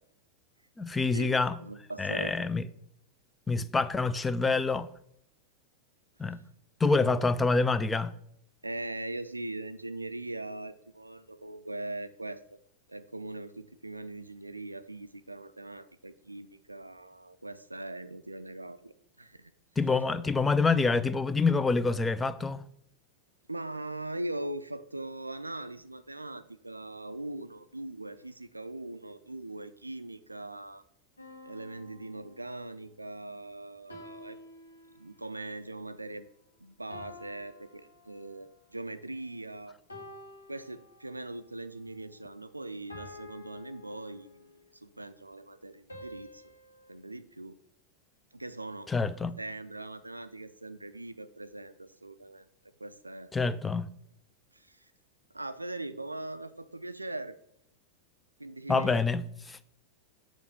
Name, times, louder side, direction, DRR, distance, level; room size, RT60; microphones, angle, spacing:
voice 1, 0.8-1.6 2.0-2.6 3.5-4.9 6.2-6.4 6.8-8.1 19.8-22.6 48.9-49.4 53.3-53.9 58.7-59.6, left 4 dB, 15° left, 0.3 m, -27 dB
voice 2, 1.6-2.5 7.0-7.1 8.6-12.6 12.9-19.5 23.5-30.8 31.4-34.4 35.0-36.3 36.6-39.8 40.5-46.4 46.9-47.6 48.3-48.9 49.4-52.5 52.8-53.3 54.5-54.8 55.3-57.4 58.4-59.0, right 2 dB, 85° right, 0.3 m, -41 dB
sound 1, 31.2-32.8 33.9-35.4 36.9-38.6 39.9-41.4 42.9-44.6 45.9-46.9, left 2 dB, 80° left, 1.6 m, -50 dB
6.9 x 3.0 x 5.9 m
figure-of-eight pair, 90°, 0 cm